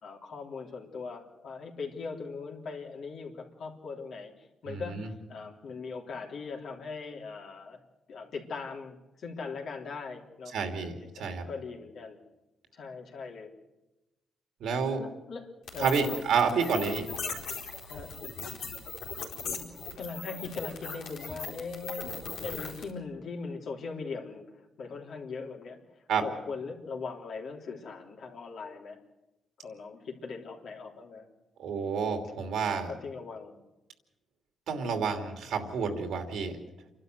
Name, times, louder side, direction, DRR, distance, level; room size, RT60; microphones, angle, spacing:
voice 1, 0.0-7.8 8.1-10.6 10.9-11.1 11.5-12.2 12.7-13.5 14.9-16.3 17.9-18.1 19.4-29.0 29.6-31.3 32.8-33.6, left 4 dB, 65° left, 1 dB, 3.3 m, -40 dB
voice 2, 4.6-5.1 10.5-11.4 14.6-15.0 15.8-17.1 26.1-26.2 31.6-32.9 34.7-36.5, right 5 dB, 85° right, 5 dB, 2.8 m, -29 dB
sound 1, 15.7-22.9, left 4 dB, 90° left, 4.3 m, -39 dB
28.5 x 12.0 x 7.9 m, 1.0 s
cardioid pair, 105°, 0 cm